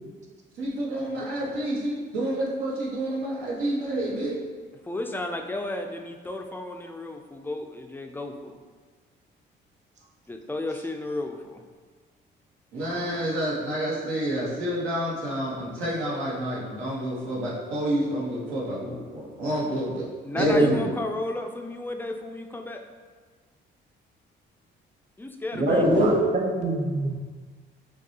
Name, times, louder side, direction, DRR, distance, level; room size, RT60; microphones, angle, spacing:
voice 1, 0.6-4.3 12.7-20.1 20.3-20.7 25.7-26.2, right 1 dB, 90° right, -6 dB, 1.2 m, -28 dB
voice 2, 4.7-8.6 10.3-11.6 20.2-22.8 25.2-25.9, left 2 dB, 10° left, 4 dB, 0.4 m, -33 dB
voice 3, 20.4-20.9 25.6-27.2, right 2 dB, 35° right, 1 dB, 0.7 m, -26 dB
6.0 x 2.3 x 2.8 m, 1.5 s
cardioid pair, 90°, 20 cm